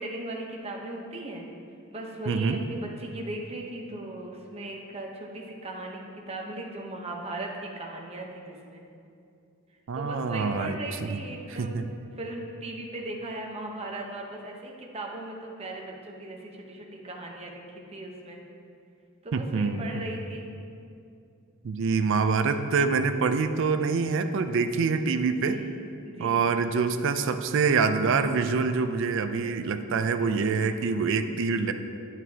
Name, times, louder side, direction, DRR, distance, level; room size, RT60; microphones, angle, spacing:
voice 1, 0.0-1.5 1.9-8.9 9.9-11.7 12.2-18.4 19.2-20.5 25.4-25.8 26.0-26.5, right 2 dB, 30° right, 0 dB, 0.9 m, -38 dB
voice 2, 2.3-2.6 9.9-11.2 11.6-11.9 19.3-20.0 21.6-25.6 26.2-31.7, right 5 dB, 60° right, 8 dB, 0.4 m, -26 dB
9.2 x 8.1 x 2.8 m, 2.5 s
head